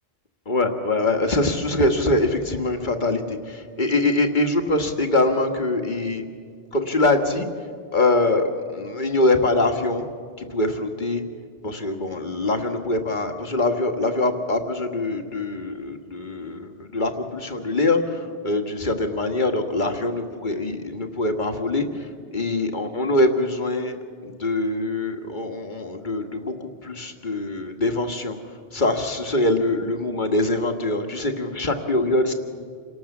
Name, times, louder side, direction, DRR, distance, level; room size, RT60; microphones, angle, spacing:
voice 1, 0.5-6.2 6.7-7.5 7.9-10.1 10.4-11.2 11.6-21.8 22.3-24.0 24.2-28.4 28.7-32.3, left 2 dB, 50° left, 6 dB, 1.9 m, -23 dB
28.0 x 18.5 x 7.3 m, 2.1 s
omnidirectional pair, 1.0 m